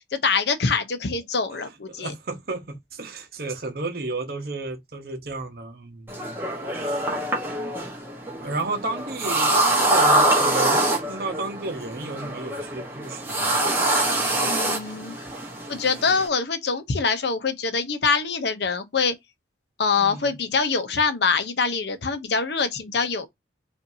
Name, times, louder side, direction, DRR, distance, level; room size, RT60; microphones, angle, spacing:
voice 1, 0.1-2.1 14.4-15.2 15.7-19.1 19.8-23.3, left 5 dB, 65° left, 0.7 m, -24 dB
voice 2, 1.9-6.5 6.8-7.0 8.4-13.6 14.0-14.5 20.0-20.4, right 2 dB, 55° right, 0.9 m, -33 dB
sound 1, 6.1-16.3, right 1 dB, 10° right, 1.1 m, -24 dB
5.1 x 2.6 x 2.7 m
head